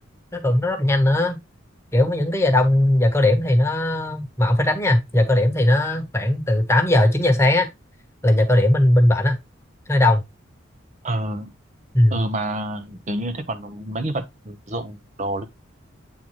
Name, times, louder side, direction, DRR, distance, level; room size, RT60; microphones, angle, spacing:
voice 1, 0.3-1.4 1.9-7.7 8.2-9.4 9.9-10.2 11.9-12.1, left 1 dB, 15° left, 1.2 m, -18 dB
voice 2, 11.0-11.5 12.1-15.5, right 1 dB, 35° right, 0.7 m, -28 dB
8.7 x 3.8 x 3.1 m
head